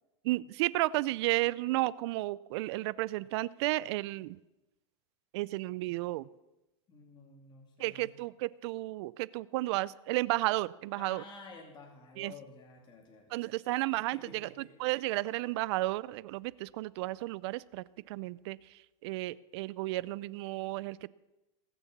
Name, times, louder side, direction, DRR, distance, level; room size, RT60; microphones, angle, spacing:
voice 1, 0.2-4.4 5.3-6.3 7.8-11.2 12.2-12.3 13.3-14.5 14.8-18.6 19.0-21.1, right 19 dB, 55° right, 21 dB, 0.5 m, -33 dB
voice 2, 6.9-8.1 11.0-13.5 14.1-14.7, left 3 dB, 30° left, 1 dB, 2.7 m, -51 dB
19.5 x 7.0 x 7.3 m, 0.99 s
supercardioid pair, 135°, 17 cm